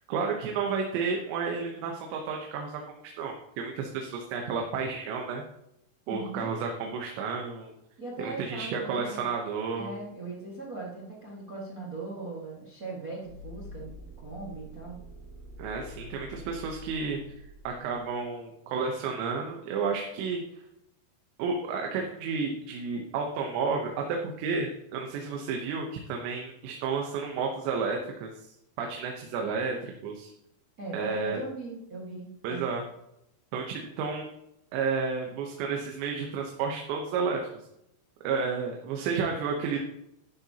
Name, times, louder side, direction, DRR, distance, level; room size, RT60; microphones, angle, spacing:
voice 1, 0.0-5.4 6.1-7.7 8.2-9.9 15.6-20.4 21.4-28.5 28.8-30.3 30.9-31.4 32.4-32.8 33.5-34.3 34.7-37.5 38.2-39.8, right 5 dB, 90° right, 2 dB, 3.3 m, -31 dB
voice 2, 6.1-6.5 8.0-9.3 9.8-15.0 30.8-32.7, right 3 dB, 55° right, -4 dB, 0.9 m, -39 dB
sound 1, 13.2-18.1, left 1 dB, 35° left, 3.5 m, -46 dB
12.5 x 11.0 x 2.9 m, 0.84 s
omnidirectional pair, 5.0 m